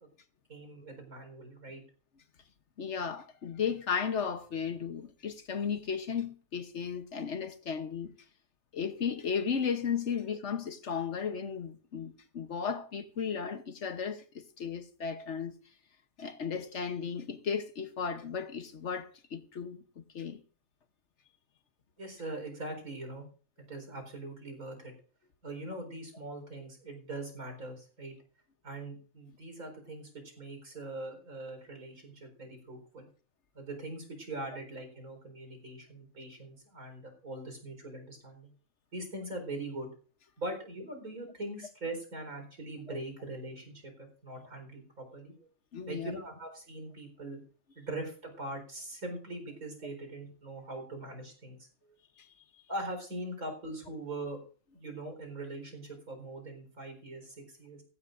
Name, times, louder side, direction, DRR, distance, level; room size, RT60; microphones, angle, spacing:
voice 1, 0.5-1.8 22.0-23.3 23.7-24.9 25.4-28.1 28.6-30.1 30.4-33.1 33.5-38.5 38.9-39.9 40.4-45.3 45.9-47.4 47.7-51.7 52.7-54.4 54.7-57.8, right 2 dB, 85° right, 4.8 m, -42 dB
voice 2, 2.8-8.1 8.7-15.5 16.2-20.4 45.7-46.1, left 6 dB, 55° left, 1.2 m, -35 dB
17.5 x 15.5 x 2.6 m
omnidirectional pair, 1.5 m